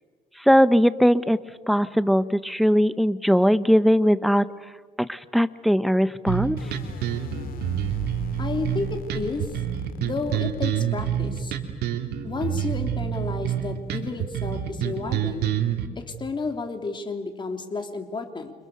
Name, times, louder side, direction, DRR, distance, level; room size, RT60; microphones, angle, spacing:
voice 1, 0.4-1.4 1.7-4.5 5.0-6.6, equal, ahead, 14 dB, 1.0 m, -20 dB
sound 1, 6.3-15.9, right 10 dB, 75° right, 2.7 m, -27 dB
sound 2, 6.6-11.6, left 7 dB, 60° left, 2.3 m, -40 dB
voice 2, 8.4-9.6 10.0-11.5 12.2-15.5 15.9-18.5, left 4 dB, 30° left, 5 dB, 3.4 m, -31 dB
30.0 x 26.0 x 6.7 m, 1.5 s
cardioid pair, 110°, 17 cm